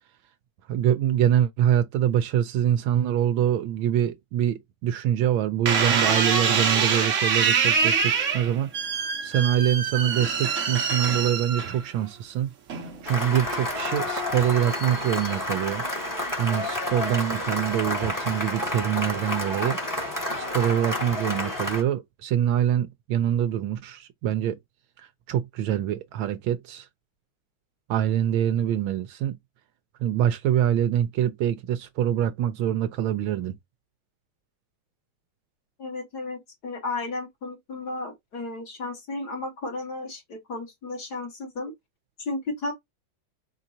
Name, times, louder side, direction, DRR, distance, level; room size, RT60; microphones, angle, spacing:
voice 1, 0.7-12.5 13.0-15.8 16.4-19.8 20.3-24.6 25.3-26.9 27.9-29.4 30.0-33.6, right 10 dB, 85° right, 1.4 m, -25 dB
sound 1, 5.7-12.1 12.7-13.2, right 6 dB, 50° right, 1.0 m, -24 dB
Cheering / Applause, 13.0-21.8, left 1 dB, 10° left, 1.0 m, -30 dB
voice 2, 35.8-41.7 42.2-42.7, left 2 dB, 55° left, 2.2 m, -33 dB
4.4 x 3.8 x 2.7 m
omnidirectional pair, 2.1 m